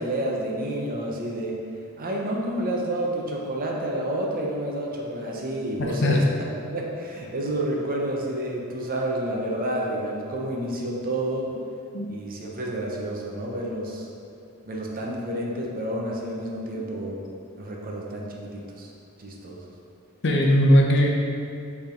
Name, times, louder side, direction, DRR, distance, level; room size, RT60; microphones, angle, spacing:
voice 1, 0.0-1.6 2.0-6.2 6.6-11.5 12.1-14.1 14.7-17.2 17.6-18.9 19.2-19.6, right 1 dB, 45° right, -1 dB, 0.8 m, -29 dB
voice 2, 5.8-6.2 11.9-12.1 20.2-21.1, equal, 60° left, -1 dB, 0.8 m, -19 dB
7.0 x 3.5 x 3.8 m, 2.5 s
head